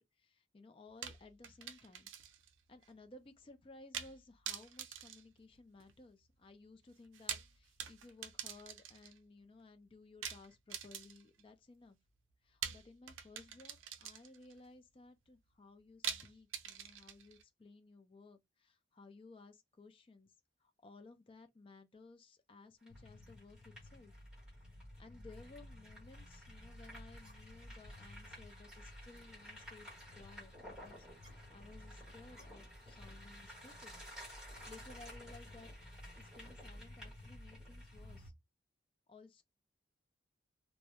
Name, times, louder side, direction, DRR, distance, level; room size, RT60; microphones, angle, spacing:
voice 1, 0.0-2.1 2.7-12.0 12.4-20.3 20.6-24.1 25.0-33.9 34.5-35.7 36.2-38.3 39.1-39.4, left 3 dB, 30° left, 0.3 m, -58 dB
sound 1, 1.0-2.5 2.8-2.9 3.9-4.2 4.5-6.0 7.0-9.2 10.2-11.4 12.6-14.5 16.0-17.4, right 9 dB, 90° right, 0.4 m, -45 dB
sound 2, 22.8-38.3, equal, 5° right, 1.1 m, -55 dB
sound 3, 22.9-38.3, left 1 dB, 25° right, 0.8 m, -55 dB
2.2 x 2.0 x 2.7 m
head